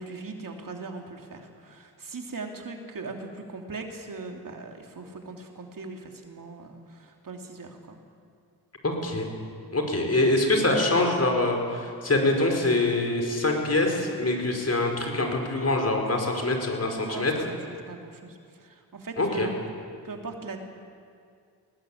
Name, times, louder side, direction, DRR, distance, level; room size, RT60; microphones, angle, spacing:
voice 1, 0.0-8.0 17.0-19.5 20.0-20.7, right 3 dB, 60° right, 3 dB, 2.9 m, -40 dB
voice 2, 8.8-9.3 9.7-17.3 19.2-19.5, left 2 dB, 40° left, 2 dB, 5.0 m, -24 dB
21.0 x 19.0 x 8.7 m, 2.3 s
cardioid pair, 70°, 38 cm